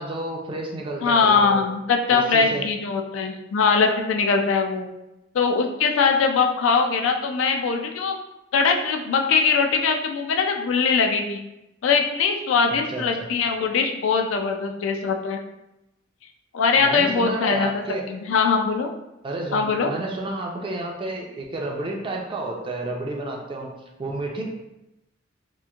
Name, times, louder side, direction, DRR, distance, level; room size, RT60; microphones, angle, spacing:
voice 1, 0.0-1.6 2.1-2.7 12.9-13.3 16.8-18.0 19.2-23.7 24.0-24.4, right 2 dB, 25° right, 0 dB, 0.4 m, -30 dB
voice 2, 1.0-4.9 5.3-8.2 8.5-11.4 11.8-15.4 16.5-18.9 19.5-19.9, left 5 dB, 80° left, 4 dB, 0.3 m, -21 dB
2.9 x 2.5 x 2.3 m, 0.92 s
head